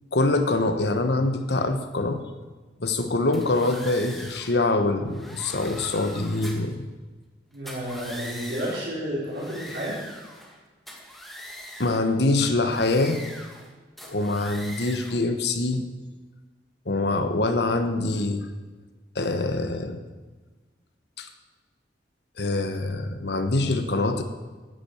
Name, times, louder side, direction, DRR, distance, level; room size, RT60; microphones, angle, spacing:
voice 1, 0.1-2.2 2.8-6.9 11.8-13.2 14.1-15.9 16.9-18.5 19.1-20.0 21.2-21.3 22.4-24.2, left 2 dB, 65° left, 7 dB, 1.1 m, -24 dB
sound 1, 3.3-4.6 5.1-6.7 7.5-8.9 9.3-10.6 10.9-12.1 12.6-13.7 14.0-15.2, equal, ahead, 2.0 m, -41 dB
voice 2, 7.5-10.0, equal, 65° right, -6 dB, 4.9 m, -31 dB
11.0 x 8.6 x 9.0 m, 1.3 s
head